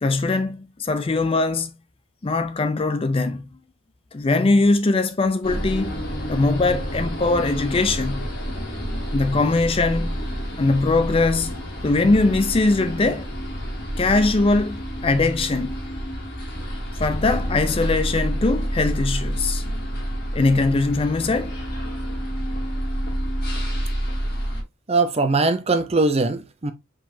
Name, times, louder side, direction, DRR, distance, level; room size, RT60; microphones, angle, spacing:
voice 1, 0.0-1.7 2.2-3.4 4.1-6.0 6.3-8.3 9.1-10.2 10.6-11.5 11.8-13.3 14.0-15.7 17.0-19.6 20.3-21.6, left 3 dB, 25° left, 0.4 m, -21 dB
sound 1, 5.4-24.6, equal, 50° left, 1.8 m, -28 dB
voice 2, 24.9-26.7, right 3 dB, 30° right, 0.6 m, -21 dB
4.8 x 3.9 x 2.7 m
head